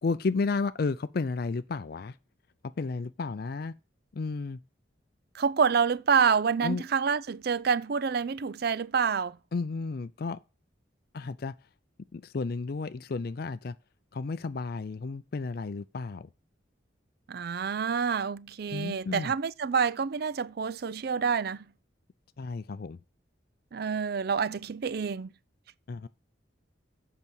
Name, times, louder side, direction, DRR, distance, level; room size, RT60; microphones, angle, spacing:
voice 1, 0.0-2.2 2.8-3.7 4.1-4.6 6.6-6.8 9.5-10.4 11.1-11.5 12.1-13.8 14.1-16.3 18.7-19.3 22.4-23.0 25.9-26.1, left 4 dB, 50° left, 0.4 m, -32 dB
voice 2, 5.3-9.4 17.3-21.6 23.7-25.3, right 6 dB, 55° right, 0.4 m, -27 dB
8.2 x 5.9 x 7.0 m
head